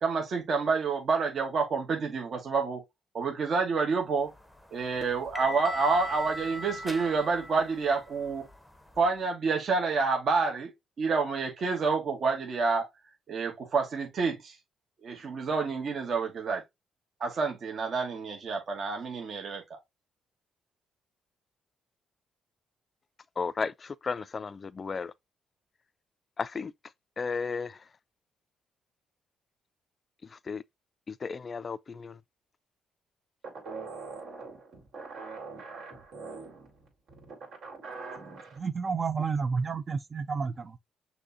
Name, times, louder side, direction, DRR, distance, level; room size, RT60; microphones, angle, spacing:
voice 1, 0.0-2.8 3.1-4.3 4.7-8.4 9.0-10.7 11.0-12.9 13.3-14.5 15.0-16.6 17.2-19.8, right 4 dB, 55° right, 1.2 m, -28 dB
sound 1, 4.3-9.1, equal, 5° left, 0.7 m, -40 dB
voice 2, 23.4-25.1 26.4-26.7 27.2-27.8 30.5-30.6 31.1-32.1, left 5 dB, 40° left, 0.3 m, -34 dB
sound 2, 33.4-38.6, right 4 dB, 70° right, 2.4 m, -43 dB
voice 3, 38.6-40.8, right 5 dB, 35° right, 0.5 m, -30 dB
6.4 x 2.7 x 2.7 m
cardioid pair, 90°, 0 cm